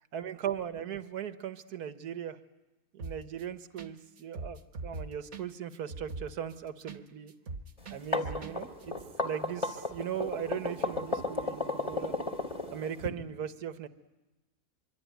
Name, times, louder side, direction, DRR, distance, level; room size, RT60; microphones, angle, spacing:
voice 1, 0.0-2.4 2.9-7.3 7.9-8.9 9.2-12.1 12.7-13.9, right 9 dB, 75° right, 10 dB, 1.6 m, -38 dB
sound 1, 3.0-3.4 3.8-3.9 4.2-7.0 7.3-8.5 8.8-8.9, right 3 dB, 50° right, 1.5 m, -41 dB
sound 2, 7.9-13.1, left 2 dB, 20° left, 2.5 m, -33 dB
25.5 x 24.0 x 9.3 m, 1.1 s
omnidirectional pair, 1.7 m